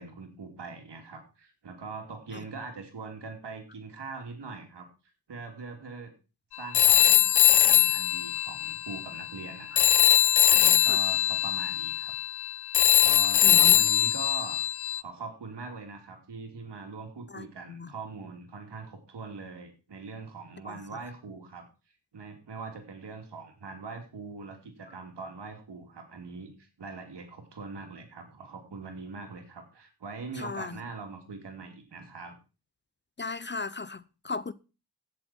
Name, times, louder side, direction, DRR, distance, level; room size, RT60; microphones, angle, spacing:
voice 1, 0.0-4.9 5.3-6.1 6.6-9.9 10.5-12.1 13.0-14.6 15.0-21.6 22.1-32.3, right 4 dB, 80° right, 3.1 m, -42 dB
Telephone, 6.7-9.5 9.8-15.0, left 12 dB, 70° left, 0.6 m, -22 dB
voice 2, 13.4-13.8 17.3-17.9 20.7-20.8 30.4-30.8 33.2-34.5, left 4 dB, 25° left, 0.6 m, -36 dB
16.0 x 7.1 x 4.4 m
cardioid pair, 65°, 41 cm